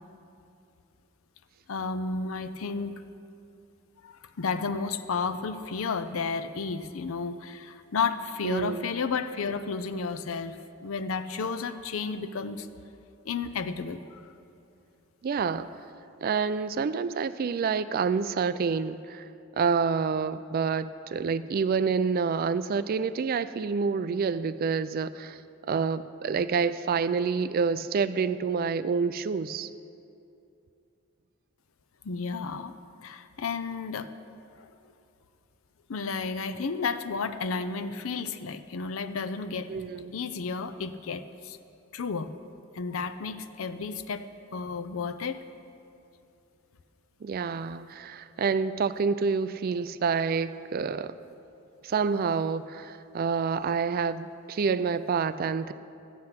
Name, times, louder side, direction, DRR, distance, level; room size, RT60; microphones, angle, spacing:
voice 1, 1.7-3.0 4.0-12.7 13.2-14.3 32.0-32.7 33.0-34.1 34.6-34.7 35.9-39.7 40.1-41.6 41.9-42.3 42.7-44.2 44.5-45.4, left 5 dB, 70° left, 11 dB, 0.6 m, -32 dB
voice 2, 8.4-8.9 15.2-15.8 16.2-19.3 19.6-25.4 25.7-29.7 39.7-40.1 47.2-51.1 51.8-55.7, right 5 dB, 45° right, 14 dB, 0.3 m, -28 dB
13.0 x 9.6 x 5.8 m, 2.6 s
head